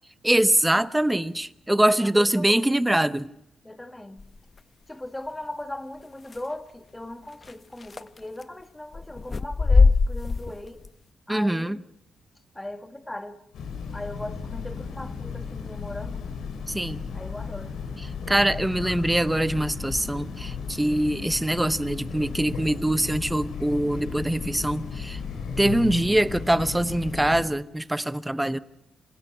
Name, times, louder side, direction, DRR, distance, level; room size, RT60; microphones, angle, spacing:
voice 1, 0.2-3.3 11.3-11.8 16.7-17.0 18.3-25.2 25.6-28.6, right 1 dB, 10° right, 0.7 m, -23 dB
voice 2, 2.0-2.7 3.6-4.2 4.9-10.8 11.3-11.8 12.5-13.4 13.9-16.2 17.1-17.8, left 1 dB, 10° left, 1.4 m, -38 dB
sound 1, 4.2-4.6 6.3-6.4 7.4-7.5 7.8-8.4 8.9-10.9, left 4 dB, 35° left, 0.7 m, -21 dB
Train, 13.5-27.4, left 5 dB, 90° left, 3.8 m, -35 dB
27.5 x 17.0 x 5.7 m
cardioid pair, 115°, 0 cm